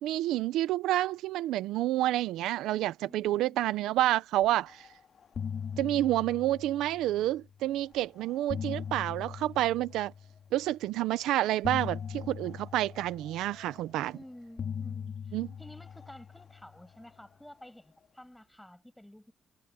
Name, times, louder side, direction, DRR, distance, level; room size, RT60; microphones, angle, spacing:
voice 1, 0.0-4.9 5.8-10.1 10.5-14.1 15.3-15.5, right 14 dB, 90° right, 0.7 m, -29 dB
voice 2, 3.1-3.7 14.1-19.3, left 1 dB, 5° left, 7.8 m, -52 dB
sound 1, 4.7-4.9 5.2-7.5 8.2-10.6 11.6-14.1 14.6-17.2, left 7 dB, 50° left, 2.1 m, -40 dB
cardioid pair, 90°, 0 cm